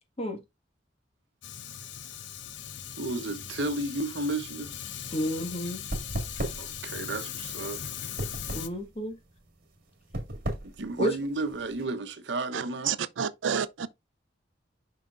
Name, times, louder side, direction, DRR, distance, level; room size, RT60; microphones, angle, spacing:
Fire, 1.4-8.7, left 9 dB, 70° left, 0.7 m, -39 dB
voice 1, 3.0-4.7 6.5-7.9 10.8-13.0, right 2 dB, 65° right, 0.9 m, -32 dB
sound 1, 4.4-11.8, right 1 dB, 50° right, 1.9 m, -37 dB
voice 2, 5.1-5.9 8.5-9.2 11.0-11.1, equal, 35° left, 1.6 m, -31 dB
voice 3, 12.5-13.9, right 7 dB, 85° right, 0.4 m, -30 dB
6.9 x 5.6 x 2.5 m
head